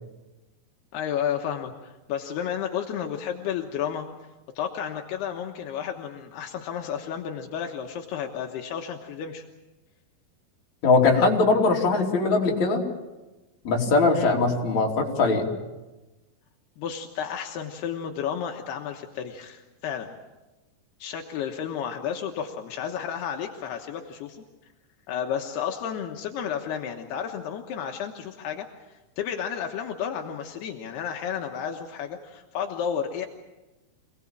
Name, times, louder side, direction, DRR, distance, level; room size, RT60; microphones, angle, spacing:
voice 1, 0.9-4.1 4.6-9.4 14.1-14.3 16.8-20.1 21.0-24.4 25.1-33.3, left 8 dB, 80° left, 2 dB, 3.2 m, -32 dB
voice 2, 10.8-12.8 13.6-15.5, left 3 dB, 45° left, -1 dB, 4.3 m, -21 dB
26.5 x 19.0 x 7.4 m, 1.1 s
omnidirectional pair, 4.7 m